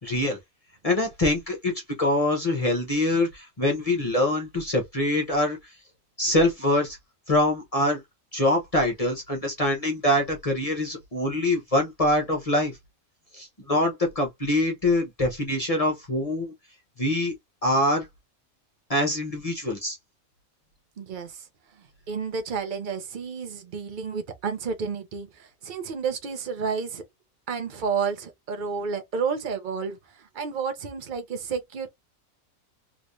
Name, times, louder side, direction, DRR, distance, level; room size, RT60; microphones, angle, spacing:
voice 1, 0.0-0.4 0.8-1.7 2.0-5.8 6.2-7.0 7.3-8.0 8.3-12.8 13.3-16.5 17.0-17.3 17.6-18.1 18.9-20.0, left 1 dB, 30° left, 0.9 m, -24 dB
voice 2, 21.0-21.5 22.1-27.0 27.5-31.9, right 5 dB, 45° right, 0.8 m, -31 dB
3.3 x 3.0 x 2.6 m
omnidirectional pair, 1.4 m